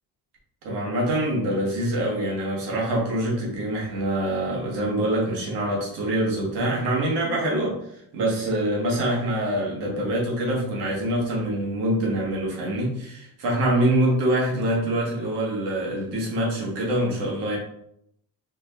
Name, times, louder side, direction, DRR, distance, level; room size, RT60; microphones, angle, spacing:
voice 1, 0.6-7.8 8.1-17.6, right 1 dB, 90° right, -3 dB, 1.5 m, -25 dB
4.4 x 2.8 x 2.8 m, 0.74 s
cardioid pair, 110°, 40 cm